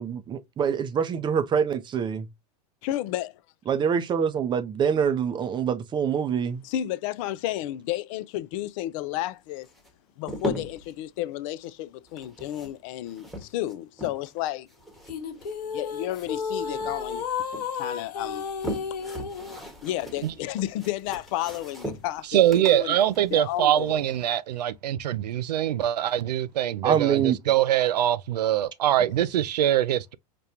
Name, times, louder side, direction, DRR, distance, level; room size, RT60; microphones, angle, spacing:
voice 1, 0.0-2.3 3.7-6.6 26.8-27.4, right 7 dB, 25° right, 0.5 m, -25 dB
voice 2, 2.8-3.3 6.6-9.7 10.2-14.7 15.7-17.3 17.7-18.4 19.8-23.0 23.3-24.1, left 13 dB, 55° left, 0.4 m, -32 dB
sound 1, 9.6-10.9 12.1-14.4 14.7-16.5 16.8-17.7 18.2-24.3, equal, ahead, 1.1 m, -39 dB
sound 2, 15.1-19.6, left 6 dB, 80° left, 0.8 m, -32 dB
voice 3, 22.3-30.2, right 11 dB, 85° right, 0.4 m, -23 dB
5.1 x 2.2 x 2.7 m
hypercardioid pair, 100°, 21 cm